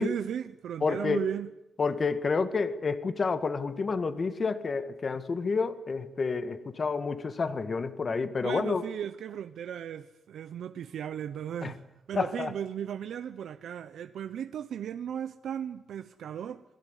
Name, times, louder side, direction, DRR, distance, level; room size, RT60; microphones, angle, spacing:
voice 1, 0.0-1.5 8.4-11.8 12.1-16.6, right 9 dB, 75° right, 1.0 m, -36 dB
voice 2, 0.8-1.3 1.8-8.8 11.6-11.7 12.2-12.5, left 4 dB, 35° left, 1.9 m, -29 dB
28.0 x 21.5 x 8.3 m
wide cardioid pair, 155°, 0 cm